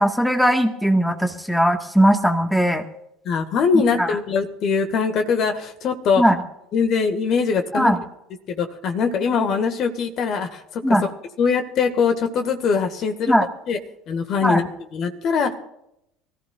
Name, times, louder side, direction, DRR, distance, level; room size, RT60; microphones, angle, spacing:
voice 1, 0.0-2.8 4.0-4.1 6.2-6.4 7.7-8.0 10.8-11.0 13.3-13.5 14.4-14.6, equal, 5° left, 5 dB, 1.6 m, -18 dB
voice 2, 3.3-6.2 6.7-8.0 8.5-11.0 11.4-13.3 13.7-13.8 14.1-15.5, left 5 dB, 50° left, 7 dB, 1.8 m, -22 dB
24.5 x 14.5 x 2.5 m, 0.79 s
figure-of-eight pair, 65°, 0 cm